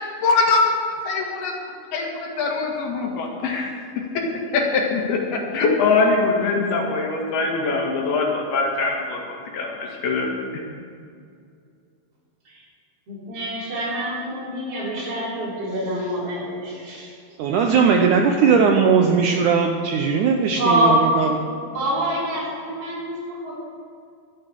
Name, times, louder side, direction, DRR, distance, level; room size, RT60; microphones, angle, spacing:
voice 1, 0.2-0.6 1.1-1.5 1.9-3.7 4.5-10.3, left 4 dB, 80° left, 0 dB, 3.7 m, -22 dB
voice 2, 13.1-17.1 20.6-21.3 21.6-23.5, equal, 40° right, -8 dB, 4.8 m, -25 dB
voice 3, 17.4-21.4, right 6 dB, 80° right, 3 dB, 1.8 m, -18 dB
13.0 x 8.1 x 8.0 m, 2.3 s
omnidirectional pair, 4.4 m